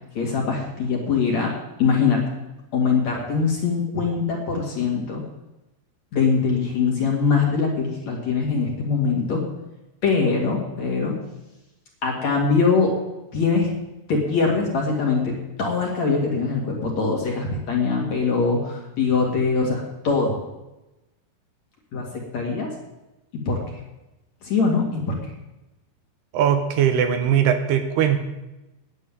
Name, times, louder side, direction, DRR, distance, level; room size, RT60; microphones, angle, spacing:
voice 1, 0.1-1.5 1.8-2.2 2.7-5.2 6.1-9.4 10.0-11.2 12.0-12.9 13.3-13.7 14.1-20.4 21.9-22.7 23.5-23.6 24.4-25.2, left 4 dB, 45° left, -1 dB, 3.0 m, -22 dB
voice 2, 26.3-28.2, right 9 dB, 75° right, 7 dB, 2.8 m, -20 dB
10.0 x 8.8 x 9.0 m, 0.99 s
omnidirectional pair, 4.9 m